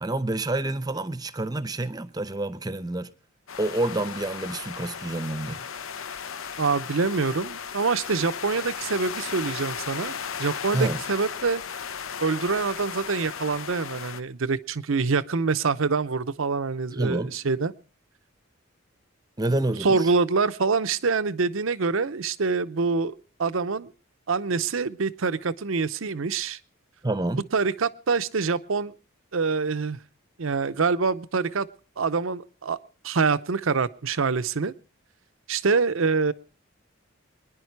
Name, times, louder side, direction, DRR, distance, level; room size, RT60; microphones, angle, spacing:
voice 1, 0.0-3.1 3.6-5.6 10.7-11.0 16.9-17.3 19.4-20.1 27.0-27.4, right 2 dB, 20° right, 0.7 m, -28 dB
sound 1, 3.5-14.2, left 7 dB, 75° left, 0.7 m, -36 dB
voice 2, 6.6-11.6 12.2-17.7 19.8-23.1 23.4-23.9 24.3-26.6 27.3-28.9 29.3-30.0 30.4-31.7 32.0-32.8 33.0-34.7 35.5-36.3, right 4 dB, 70° right, 0.7 m, -25 dB
24.5 x 10.5 x 4.6 m
head